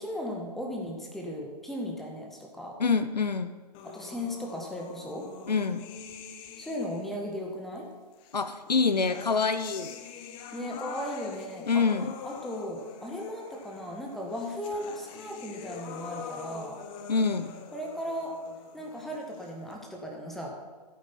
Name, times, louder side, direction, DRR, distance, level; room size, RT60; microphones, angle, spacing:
voice 1, 0.0-2.8 3.8-5.3 6.6-7.9 10.5-11.9 12.2-16.8 17.7-18.4 18.7-20.6, equal, ahead, 0 dB, 1.6 m, -36 dB
voice 2, 2.8-3.5 5.5-5.9 8.3-10.0 11.7-12.1 17.1-17.5, left 4 dB, 75° left, 11 dB, 0.8 m, -26 dB
sound 1, 3.7-7.2 8.2-19.8, left 6 dB, 25° left, 1.2 m, -45 dB
15.0 x 8.3 x 4.5 m, 1.4 s
figure-of-eight pair, 120°, 21 cm